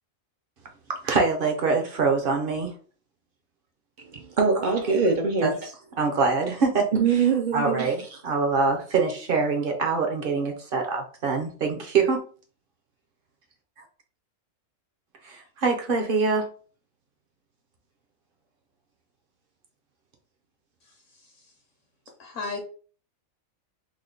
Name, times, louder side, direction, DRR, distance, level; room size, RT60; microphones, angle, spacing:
voice 1, 1.0-2.7 5.4-5.5 6.0-6.9 7.5-12.2 15.2-16.5, right 4 dB, 50° right, 0.7 m, -24 dB
voice 2, 4.0-5.5 6.9-8.2, right 5 dB, 75° right, 0.4 m, -23 dB
voice 3, 20.8-21.5 22.2-22.6, left 4 dB, 65° left, 0.9 m, -37 dB
3.5 x 2.1 x 3.7 m
omnidirectional pair, 1.5 m